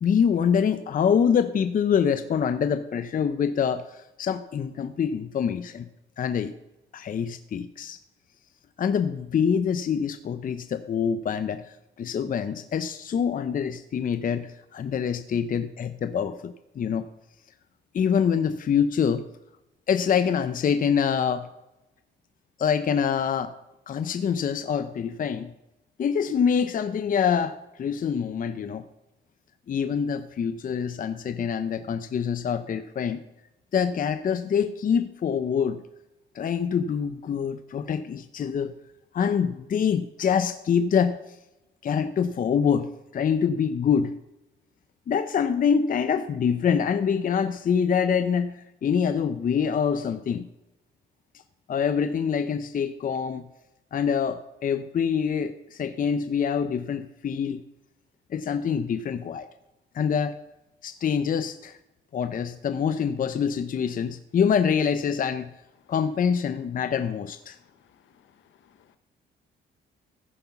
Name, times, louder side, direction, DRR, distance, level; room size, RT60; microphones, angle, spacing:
voice 1, 0.0-5.9 6.2-6.5 6.9-8.0 8.8-17.0 17.9-19.2 19.9-21.5 22.6-23.5 23.9-25.5 26.0-28.8 29.7-33.2 33.7-35.8 36.3-38.7 39.1-41.2 41.8-44.2 45.1-50.5 51.7-53.5 53.9-57.6 58.3-59.5 59.9-60.4 60.8-61.8 62.1-65.5 65.9-67.6, left 7 dB, 45° left, 0.6 m, -25 dB
voice 2, 68.1-69.0, left 8 dB, 70° left, 1.0 m, -61 dB
15.0 x 5.4 x 5.8 m
cardioid pair, 90°, 20 cm